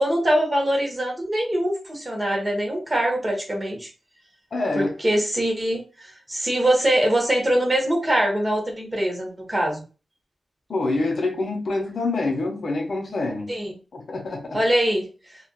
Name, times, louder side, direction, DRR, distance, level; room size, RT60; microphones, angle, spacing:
voice 1, 0.0-3.9 4.8-9.8 13.5-13.7 14.5-15.0, right 1 dB, 20° right, 1.2 m, -23 dB
voice 2, 4.5-4.9 10.7-13.5 13.9-14.6, left 2 dB, 60° left, 0.7 m, -26 dB
3.4 x 2.4 x 2.3 m
wide cardioid pair, 100°, 0 cm